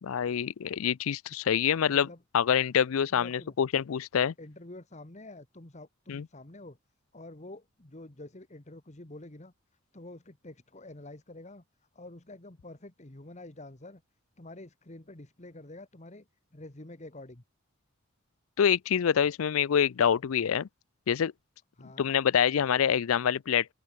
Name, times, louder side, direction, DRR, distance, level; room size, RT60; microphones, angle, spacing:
voice 1, 0.0-2.1 2.3-4.3 6.1-6.2 18.6-20.7 21.1-21.3 22.0-23.7, left 8 dB, 80° left, 0.4 m, -26 dB
voice 2, 1.8-2.2 3.1-3.6 4.4-6.8 7.1-9.5 9.9-11.6 11.9-14.0 14.4-17.4 21.8-22.1, left 2 dB, 35° left, 1.7 m, -47 dB
open air
head